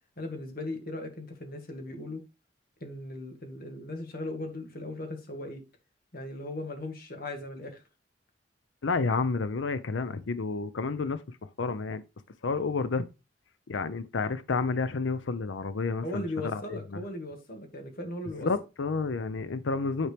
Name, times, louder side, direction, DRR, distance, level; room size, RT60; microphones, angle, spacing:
voice 1, 0.2-2.2 2.8-5.6 6.1-7.8 16.0-18.5, left 1 dB, 55° left, 1.8 m, -38 dB
voice 2, 8.8-12.0 12.4-13.1 13.7-17.0 18.4-20.1, left 4 dB, 85° left, 0.6 m, -30 dB
9.6 x 4.4 x 3.4 m
head